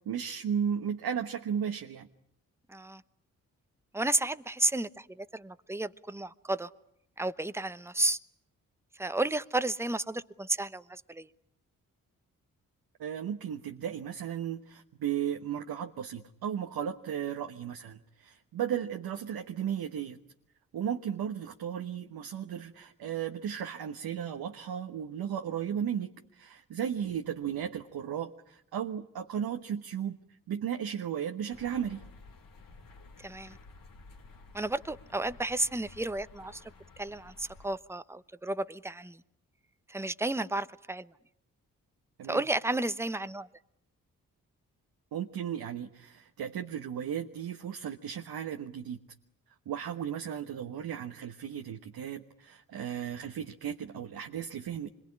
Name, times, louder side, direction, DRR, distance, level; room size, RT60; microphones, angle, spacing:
voice 1, 0.0-2.1 13.0-20.2 20.7-30.2 30.5-32.0 42.2-42.4 45.1-49.0 49.7-54.9, right 8 dB, 70° right, 5 dB, 1.3 m, -35 dB
voice 2, 2.7-3.0 3.9-6.7 7.2-8.2 9.0-11.3 33.2-33.6 34.5-36.6 37.0-39.2 39.9-41.1 42.3-43.5, right 2 dB, 5° right, 13 dB, 1.0 m, -32 dB
sound 1, 31.5-37.8, left 3 dB, 60° left, 2.9 m, -53 dB
26.0 x 22.5 x 9.9 m, 0.76 s
hypercardioid pair, 40°, 38 cm